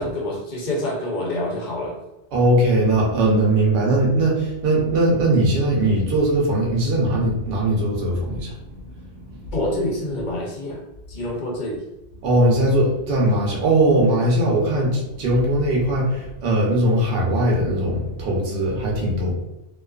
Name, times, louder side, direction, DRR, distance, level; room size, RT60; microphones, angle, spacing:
voice 1, 0.0-2.0 9.5-10.8 11.1-11.8, left 1 dB, 55° left, -1 dB, 0.7 m, -27 dB
voice 2, 2.3-8.5 8.9-9.5 12.2-19.3, right 1 dB, 65° right, -3 dB, 0.9 m, -20 dB
2.4 x 2.3 x 2.3 m, 0.95 s
omnidirectional pair, 1.1 m